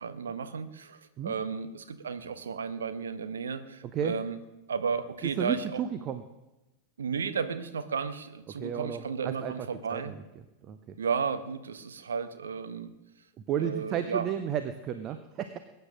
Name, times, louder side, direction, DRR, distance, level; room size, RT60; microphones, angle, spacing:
voice 1, 0.0-4.4 4.7-5.8 7.0-10.2 11.0-12.9 13.6-14.3, right 6 dB, 70° right, 10 dB, 1.2 m, -33 dB
voice 2, 5.2-6.2 8.6-9.5 9.9-10.2 10.6-10.9 13.5-15.6, right 9 dB, 35° right, 9 dB, 0.9 m, -33 dB
21.5 x 9.4 x 6.4 m, 1.0 s
figure-of-eight pair, 90°, 0 cm